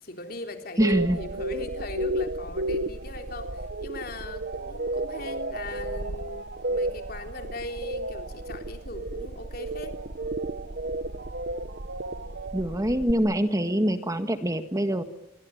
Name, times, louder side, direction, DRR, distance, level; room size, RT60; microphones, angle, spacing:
voice 1, 0.0-9.9, left 1 dB, 50° left, 5 dB, 3.5 m, -39 dB
voice 2, 0.8-1.2 12.5-15.0, equal, 15° right, 8 dB, 1.6 m, -24 dB
sound 1, 0.8-13.1, right 2 dB, 55° right, 1.1 m, -32 dB
27.0 x 24.5 x 9.1 m, 0.83 s
head